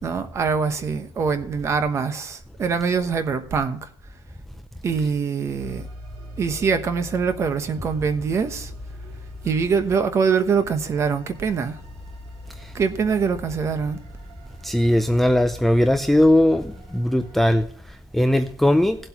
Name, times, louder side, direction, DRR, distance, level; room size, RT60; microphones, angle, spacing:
voice 1, 0.0-3.9 4.8-5.9 6.4-8.7 9.4-11.8 12.7-14.0, right 5 dB, 30° right, 1.1 m, -23 dB
sound 1, 5.6-17.6, left 1 dB, 75° right, 3.3 m, -42 dB
voice 2, 14.6-17.7 18.1-19.0, left 1 dB, ahead, 0.4 m, -19 dB
18.0 x 7.8 x 2.9 m
cardioid pair, 170°, 10 cm